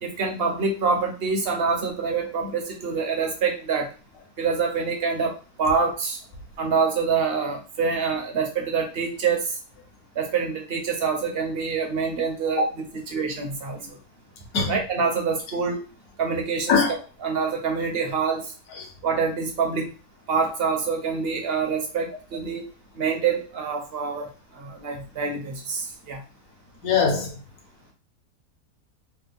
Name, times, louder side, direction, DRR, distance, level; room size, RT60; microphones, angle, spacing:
voice 1, 0.0-3.9 4.4-6.2 6.6-9.6 10.2-13.8 14.7-15.8 16.2-16.8 17.2-18.5 19.0-19.9 20.3-22.7 23.0-24.3 24.5-26.2, right 5 dB, 55° right, 0.8 m, -26 dB
voice 2, 26.8-27.3, left 5 dB, 75° left, 1.3 m, -21 dB
3.2 x 2.2 x 3.4 m
omnidirectional pair, 1.6 m